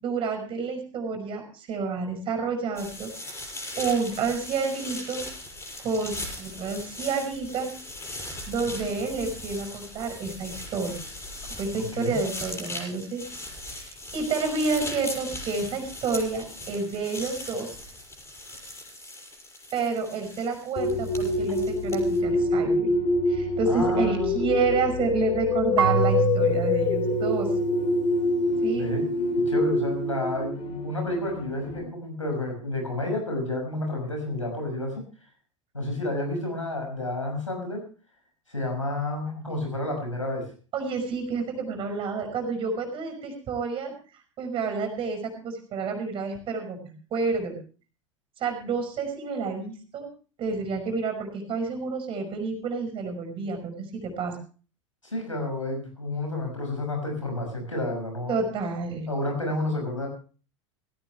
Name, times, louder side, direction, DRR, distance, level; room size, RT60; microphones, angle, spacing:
voice 1, 0.0-3.1 3.8-5.2 5.8-7.7 8.5-11.0 11.6-13.2 13.6-17.8 19.7-22.9 23.3-27.5 28.6-28.9 40.7-43.9 44.4-46.8 47.1-47.6 48.4-50.1 50.4-54.4 58.3-59.1, right 4 dB, 35° right, 5 dB, 5.5 m, -29 dB
sound 1, 2.8-22.2, left 2 dB, 15° left, 6.8 m, -39 dB
voice 2, 11.7-12.2 23.7-24.3 28.7-29.1 29.5-35.0 35.7-37.8 38.5-40.5 55.0-58.5 59.1-60.1, left 1 dB, 85° left, 2 dB, 6.0 m, -30 dB
sound 2, 20.8-31.8, left 2 dB, 40° left, 3.0 m, -26 dB
Marimba xylophone / Wood, 25.8-28.6, right 10 dB, 70° right, 0.9 m, -28 dB
17.5 x 16.5 x 3.3 m, 0.37 s
figure-of-eight pair, 85°, 16 cm